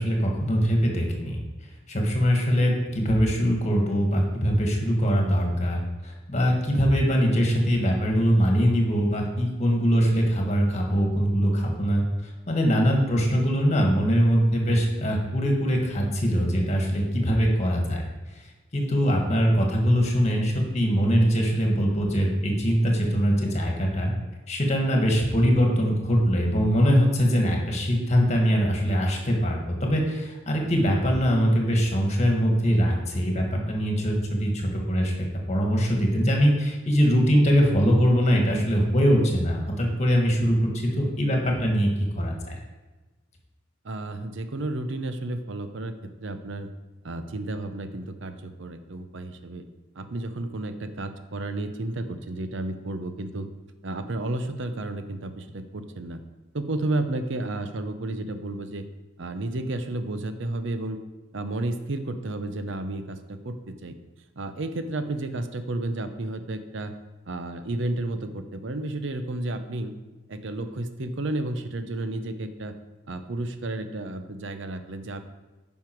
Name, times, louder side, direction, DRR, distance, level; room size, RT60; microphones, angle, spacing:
voice 1, 0.0-1.4 1.9-12.0 12.5-18.0 18.7-24.1 24.5-41.9 42.2-42.5, equal, 35° left, 1 dB, 1.6 m, -22 dB
voice 2, 43.8-45.9 46.2-46.7 47.0-49.6 50.0-53.5 53.8-56.2 56.5-58.9 59.2-61.0 61.3-64.0 64.4-66.9 67.3-69.9 70.3-72.7 73.1-75.2, right 2 dB, 65° right, 9 dB, 0.7 m, -32 dB
9.5 x 5.6 x 4.6 m, 1.2 s
head